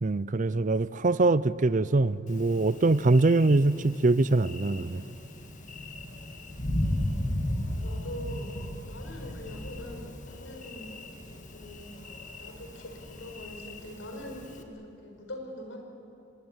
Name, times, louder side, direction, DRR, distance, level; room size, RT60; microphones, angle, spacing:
voice 1, 0.0-5.0, right 2 dB, 40° right, 17 dB, 0.6 m, -23 dB
Thunder, 2.3-14.6, left 1 dB, 40° left, 1.9 m, -36 dB
voice 2, 7.6-11.0 11.5-11.9 12.4-15.8, equal, 80° left, 2 dB, 4.7 m, -43 dB
25.0 x 19.5 x 9.7 m, 2.7 s
head